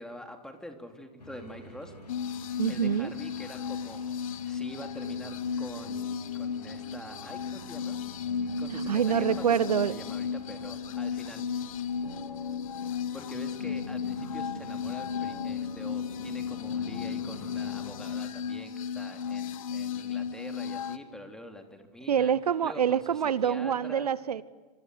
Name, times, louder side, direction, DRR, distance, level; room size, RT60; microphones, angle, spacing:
voice 1, 0.0-1.9 2.7-8.0 8.6-11.8 13.1-22.3 22.6-23.0 23.4-24.1, left 1 dB, 5° left, 4 dB, 3.4 m, -45 dB
sound 1, 1.2-18.2, equal, 80° left, 3.2 m, -44 dB
sound 2, 2.1-21.0, left 7 dB, 55° left, 1.6 m, -35 dB
voice 2, 2.6-3.1 8.7-9.9 22.1-24.4, right 8 dB, 70° right, 20 dB, 0.8 m, -26 dB
27.5 x 26.5 x 8.0 m, 1.3 s
figure-of-eight pair, 100°, 21 cm